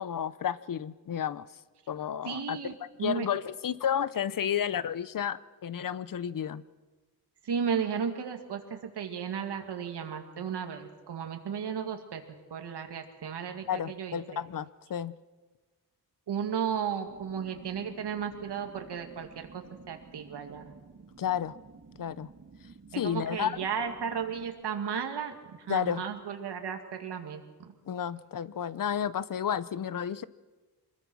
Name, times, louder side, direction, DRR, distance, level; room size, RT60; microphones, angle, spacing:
voice 1, 0.0-1.5 1.9-2.6 3.0-6.6 13.7-15.1 21.2-21.6 22.0-22.3 23.0-23.6 25.7-26.0 27.9-30.2, left 9 dB, 55° left, 17 dB, 0.7 m, -31 dB
voice 2, 2.2-2.7 3.0-3.3 7.4-12.2 12.5-14.2 16.3-20.7 22.9-27.7, right 7 dB, 85° right, 5 dB, 2.2 m, -34 dB
sound 1, 17.1-24.5, right 4 dB, 45° right, 2.2 m, -52 dB
26.0 x 21.0 x 6.2 m, 1.3 s
wide cardioid pair, 125°, 39 cm